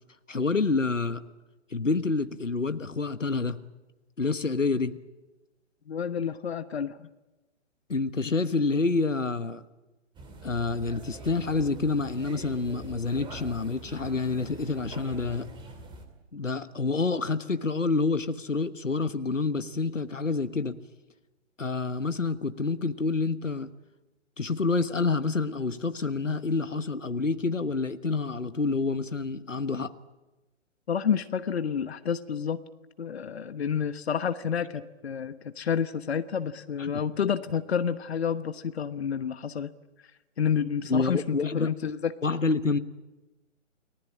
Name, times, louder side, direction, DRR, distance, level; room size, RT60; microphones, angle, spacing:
voice 1, 0.3-1.2 1.7-3.6 4.2-5.0 7.9-9.6 10.4-15.5 16.3-20.8 21.6-23.7 24.4-29.9 36.8-37.0 40.9-41.7 42.2-42.8, left 3 dB, 90° left, 12 dB, 1.3 m, -28 dB
voice 2, 5.9-7.1 30.9-32.6 33.0-39.7 40.4-42.1, left 7 dB, 60° left, 12 dB, 1.2 m, -29 dB
sound 1, 10.1-16.0, right 2 dB, 15° right, 2.7 m, -44 dB
29.5 x 19.0 x 8.7 m, 1.1 s
figure-of-eight pair, 130°, 37 cm